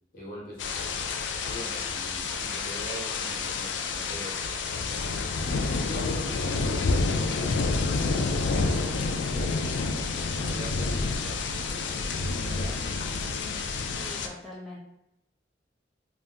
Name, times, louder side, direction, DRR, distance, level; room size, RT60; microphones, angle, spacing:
voice 1, 0.1-0.9 1.4-4.5 5.4-9.9 10.3-12.9, left 1 dB, 50° left, -4 dB, 0.9 m, -42 dB
sound 1, 0.6-14.3, left 3 dB, 90° left, 0.3 m, -29 dB
voice 2, 14.0-14.8, left 1 dB, ahead, -7 dB, 0.4 m, -42 dB
2.7 x 2.0 x 3.6 m, 0.88 s
head